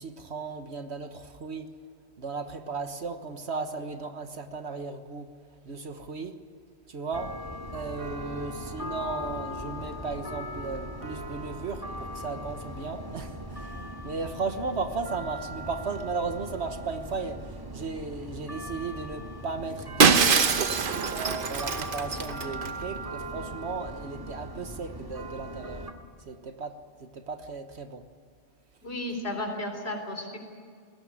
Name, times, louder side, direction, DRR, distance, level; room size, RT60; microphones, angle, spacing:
voice 1, 0.0-1.7 2.2-5.3 5.6-6.3 6.9-7.3 7.7-17.4 17.7-20.5 21.1-25.9 26.3-28.0, right 4 dB, 65° right, 8 dB, 1.6 m, -35 dB
sound 1, 7.1-25.9, right 1 dB, 20° right, 2.1 m, -39 dB
Shatter, 20.0-22.7, right 5 dB, 50° right, 1.1 m, -23 dB
voice 2, 28.8-30.4, left 1 dB, 60° left, 4 dB, 4.0 m, -33 dB
20.0 x 17.5 x 9.9 m, 2.1 s
omnidirectional pair, 1.2 m